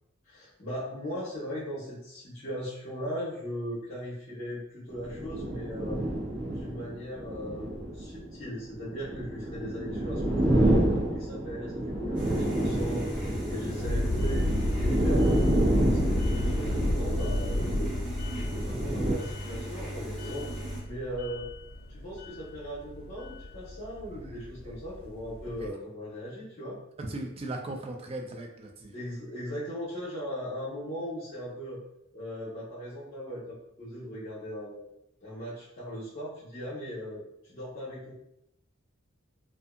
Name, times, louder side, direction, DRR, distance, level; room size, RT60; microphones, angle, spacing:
voice 1, 0.3-6.0 6.5-11.7 12.0-14.5 14.8-18.0 18.4-21.5 21.9-26.8 28.9-31.8 32.1-34.9 35.2-38.1, equal, 45° left, -9 dB, 0.7 m, -38 dB
sound 1, 4.9-19.1, right 1 dB, 65° right, 0.8 m, -29 dB
sound 2, 12.1-20.8, equal, 5° right, 0.8 m, -38 dB
sound 3, 13.8-25.7, left 1 dB, 90° left, 0.4 m, -32 dB
voice 2, 27.0-28.9, right 2 dB, 30° right, 3 dB, 0.3 m, -38 dB
2.7 x 2.3 x 2.4 m, 0.81 s
head